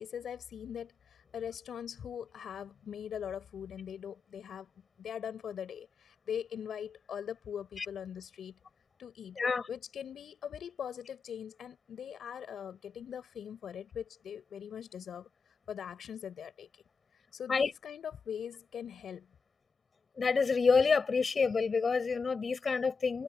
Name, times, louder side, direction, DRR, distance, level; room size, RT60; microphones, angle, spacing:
voice 1, 0.0-4.7 5.0-8.6 9.0-9.4 9.7-15.3 15.7-16.8 17.3-19.3, left 8 dB, 50° left, 5.4 m, -41 dB
voice 2, 9.4-9.7 17.5-17.7 20.2-23.2, left 5 dB, 35° left, 7.8 m, -28 dB
supercardioid pair, 70°, 0 cm